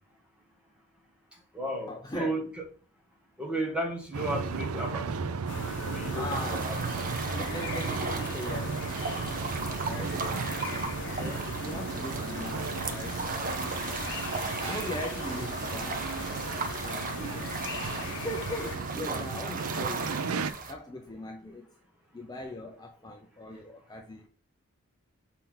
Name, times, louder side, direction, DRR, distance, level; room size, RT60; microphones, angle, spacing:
voice 1, 1.3-2.6 3.4-5.4 5.8-6.2 6.5-6.8 10.9-11.5 16.8-17.4 17.8-17.9, right 1 dB, 5° right, 1.5 m, -35 dB
voice 2, 1.9-2.4 6.1-6.7 7.3-9.4 9.8-10.2 10.7-10.9 11.4-13.2 14.0-14.1 14.6-16.0 16.8-17.1 18.0-20.3 20.6-21.7 22.1-24.3, left 1 dB, 20° left, 0.6 m, -40 dB
sound 1, 4.1-20.5, right 5 dB, 75° right, 0.5 m, -35 dB
sound 2, 5.5-18.8, left 4 dB, 55° left, 1.0 m, -40 dB
sound 3, 6.3-20.7, right 4 dB, 40° right, 0.9 m, -37 dB
6.9 x 4.3 x 3.9 m
head